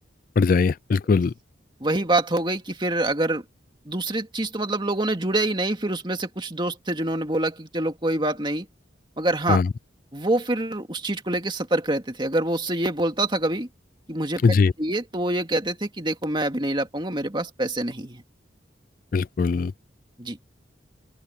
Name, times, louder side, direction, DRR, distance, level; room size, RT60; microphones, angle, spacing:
voice 1, 0.4-1.3 9.5-9.7 14.4-14.7 19.1-19.7, left 4 dB, 50° left, 0.3 m, -20 dB
voice 2, 1.8-3.4 3.9-8.7 9.2-9.6 10.1-13.7 14.1-14.4 14.8-18.2 20.2-20.4, right 1 dB, 25° right, 2.4 m, -26 dB
open air
head